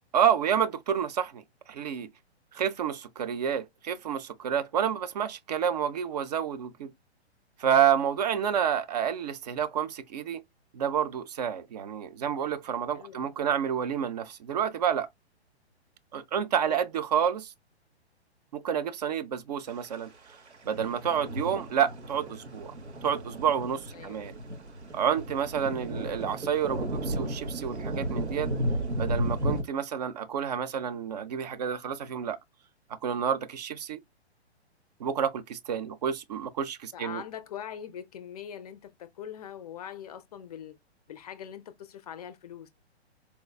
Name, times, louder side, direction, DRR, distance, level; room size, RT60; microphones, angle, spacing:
voice 1, 0.1-1.4 1.7-2.1 2.5-6.9 7.6-10.4 10.7-15.1 16.1-17.5 18.5-20.1 20.6-22.7 23.0-24.3 24.9-28.5 29.0-32.4 32.9-34.0 35.0-37.2, right 8 dB, 40° right, 0.4 m, -29 dB
voice 2, 12.9-13.3 16.6-16.8 23.9-24.3 25.6-25.9 36.9-40.8 41.1-42.8, left 9 dB, 35° left, 0.4 m, -42 dB
sound 1, 19.8-19.9 20.5-29.6, right 1 dB, 85° right, 0.9 m, -33 dB
4.3 x 2.2 x 2.2 m
figure-of-eight pair, 120°, 33 cm